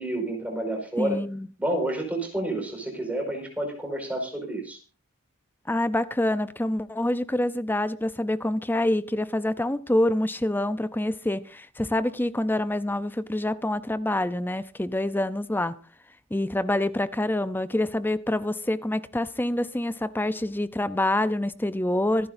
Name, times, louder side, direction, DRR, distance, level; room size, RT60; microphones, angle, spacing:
voice 1, 0.0-1.2 1.6-4.8, right 1 dB, 5° right, 5.1 m, -29 dB
voice 2, 1.0-1.5 5.7-15.8 16.3-22.3, left 1 dB, 10° left, 0.6 m, -26 dB
26.0 x 10.0 x 2.6 m
head